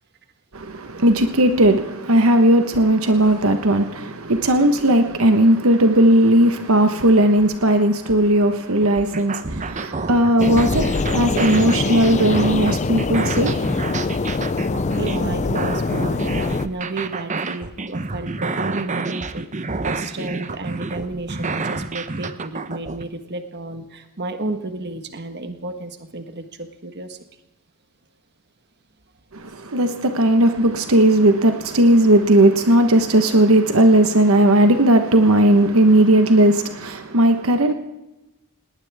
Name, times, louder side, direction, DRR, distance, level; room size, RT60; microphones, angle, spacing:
voice 1, 0.5-13.7 29.3-37.7, right 1 dB, 75° right, 1.3 m, -16 dB
sound 1, 8.8-23.0, right 3 dB, 35° right, 0.9 m, -29 dB
sound 2, 10.4-16.7, left 3 dB, 35° left, 0.5 m, -23 dB
voice 2, 14.2-14.5 14.9-27.2 29.5-29.6, right 2 dB, 50° right, 1.5 m, -32 dB
19.5 x 18.5 x 3.6 m
head